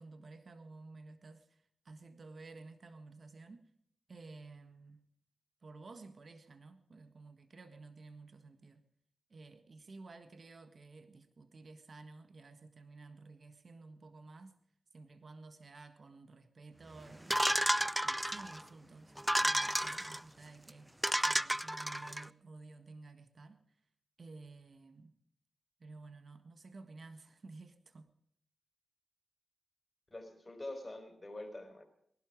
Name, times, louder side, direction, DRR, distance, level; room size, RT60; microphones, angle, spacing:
voice 1, 0.0-3.7 4.1-5.0 5.6-8.9 9.3-14.6 14.9-17.5 18.0-19.1 19.4-23.6 24.2-25.1 25.8-28.1, right 3 dB, 55° right, 9 dB, 1.6 m, -53 dB
sound 1, 17.3-18.6 19.2-20.2 20.7-20.8 21.0-22.2, equal, 10° right, 0.5 m, -32 dB
voice 2, 30.1-31.9, left 1 dB, 25° left, 5 dB, 5.0 m, -45 dB
19.5 x 12.0 x 5.0 m, 0.68 s
cardioid pair, 50°, 0 cm